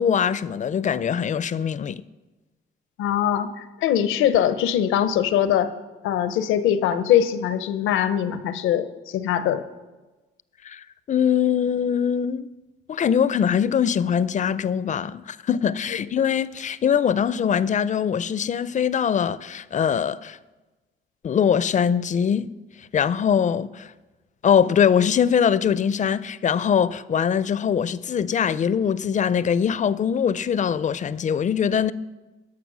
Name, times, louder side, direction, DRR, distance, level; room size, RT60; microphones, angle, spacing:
voice 1, 0.0-2.0 10.6-12.5 12.9-20.4 21.2-22.5 22.8-23.9 24.4-31.9, left 8 dB, 40° left, 0.4 m, -22 dB
voice 2, 3.0-5.7 6.0-9.6 15.9-16.0, left 10 dB, 90° left, 0.7 m, -22 dB
12.0 x 5.9 x 6.1 m
cardioid pair, 90°, 20 cm